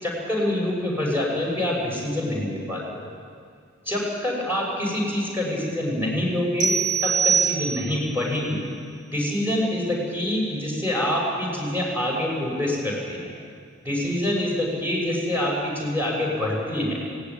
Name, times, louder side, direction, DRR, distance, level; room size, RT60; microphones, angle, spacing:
voice 1, 0.0-3.1 3.8-6.7 7.0-8.6 9.1-13.3 13.8-17.0, left 1 dB, 10° right, -3 dB, 6.2 m, -26 dB
sound 1, 6.6-8.1, right 6 dB, 35° right, 2.1 m, -23 dB
17.5 x 17.5 x 9.8 m, 2.2 s
head